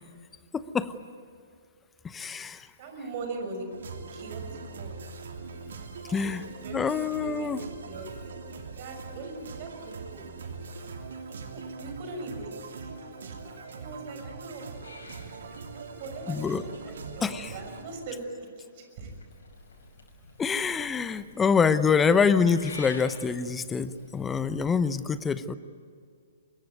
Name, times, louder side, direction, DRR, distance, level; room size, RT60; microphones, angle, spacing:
voice 1, 0.5-0.9 2.0-2.7 6.1-6.4 6.7-7.6 16.3-16.6 17.2-17.5 20.4-25.5, left 5 dB, 10° left, 14 dB, 0.9 m, -25 dB
voice 2, 2.8-3.7 4.1-5.0 6.2-7.5 7.8-10.0 11.3-12.5 12.8-12.9 13.2-13.4 13.7-14.7 15.2-19.1, right 3 dB, 40° right, 4 dB, 6.3 m, -41 dB
sound 1, 3.7-17.8, right 5 dB, 60° right, 2.9 m, -42 dB
Purr / Meow, 14.8-18.1 19.0-24.6, left 2 dB, 70° left, 6.1 m, -49 dB
25.0 x 21.5 x 9.5 m, 2.3 s
figure-of-eight pair, 120°, 0 cm